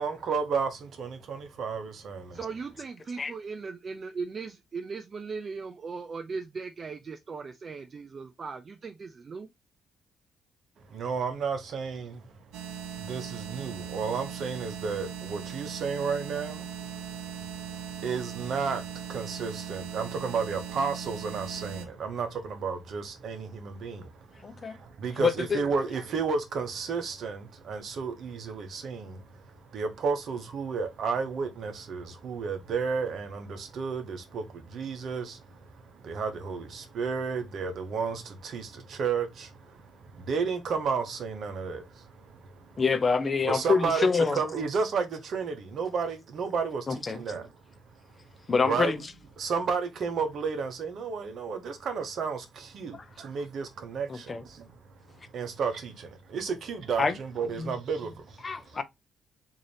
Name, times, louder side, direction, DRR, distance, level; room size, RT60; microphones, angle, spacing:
voice 1, 0.0-2.4 10.9-12.3 12.9-42.8 43.4-47.5 48.6-49.0 49.4-54.9 55.3-58.4, right 5 dB, 65° right, 0.9 m, -32 dB
voice 2, 2.3-9.5, right 4 dB, 40° right, 0.4 m, -38 dB
sound 1, 12.5-21.9, right 8 dB, 85° right, 0.7 m, -39 dB
voice 3, 24.4-24.8 25.2-25.6 42.8-44.4 46.9-47.2 48.5-49.0 52.9-53.1 54.1-54.4 57.0-57.2 57.6-57.8 58.4-58.8, left 5 dB, 35° left, 0.6 m, -26 dB
3.7 x 2.7 x 3.3 m
cardioid pair, 90°, 0 cm